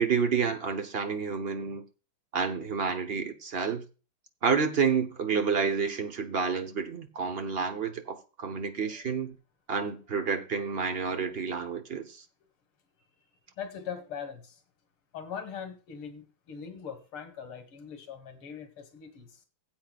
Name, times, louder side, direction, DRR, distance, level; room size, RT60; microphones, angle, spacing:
voice 1, 0.0-1.8 2.3-3.8 4.4-9.4 9.7-12.2, right 6 dB, 45° right, 0.8 m, -29 dB
voice 2, 13.6-14.6 15.1-19.4, left 7 dB, 80° left, 2.5 m, -41 dB
17.5 x 8.2 x 2.4 m
omnidirectional pair, 2.4 m